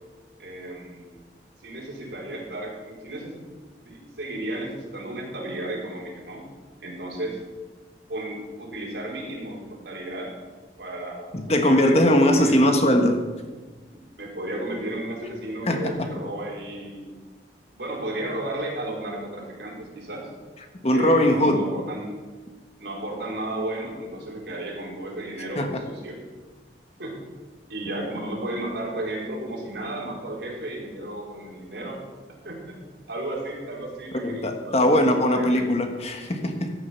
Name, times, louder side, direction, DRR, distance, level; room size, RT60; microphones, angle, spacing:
voice 1, 0.4-1.2 1.6-3.4 3.8-6.4 6.8-7.4 8.1-10.3 10.8-12.7 13.9-17.1 17.7-20.3 20.9-22.1 22.8-26.2 27.0-27.1 27.7-32.0 32.4-32.7 33.1-35.6, right 1 dB, 80° right, -2 dB, 4.1 m, -34 dB
voice 2, 11.3-13.2 15.7-16.1 20.8-21.6 25.5-25.8 34.2-36.7, left 1 dB, 35° left, 5 dB, 1.4 m, -20 dB
14.5 x 8.7 x 5.8 m, 1.3 s
head